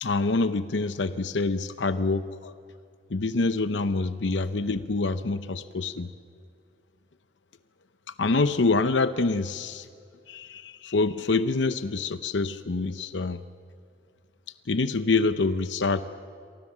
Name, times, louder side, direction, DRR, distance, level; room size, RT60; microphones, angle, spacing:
voice 1, 0.0-2.5 3.1-6.1 8.1-9.9 10.3-13.4 14.7-16.0, left 3 dB, 85° left, 12 dB, 0.8 m, -26 dB
29.0 x 24.0 x 7.4 m, 2.3 s
head